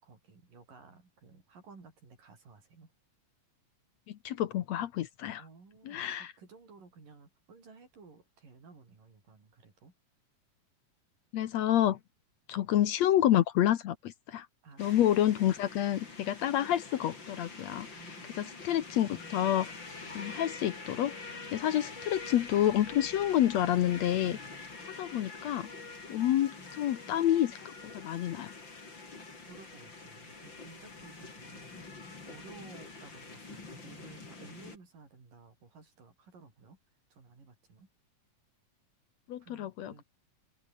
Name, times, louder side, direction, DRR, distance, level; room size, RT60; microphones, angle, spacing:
voice 1, 0.0-2.9 5.4-9.9 14.6-15.1 17.9-18.4 29.5-31.9 32.3-36.8 37.1-37.9 39.4-40.0, right 4 dB, 90° right, 8.2 m, -55 dB
voice 2, 4.1-5.4 5.9-6.3 11.3-12.0 12.5-14.5 14.8-17.9 18.4-19.7 20.2-24.4 25.0-25.7 26.1-28.5 39.3-40.0, left 12 dB, 65° left, 2.0 m, -29 dB
sound 1, 14.8-34.8, left 3 dB, 35° left, 5.0 m, -46 dB
omnidirectional pair, 3.7 m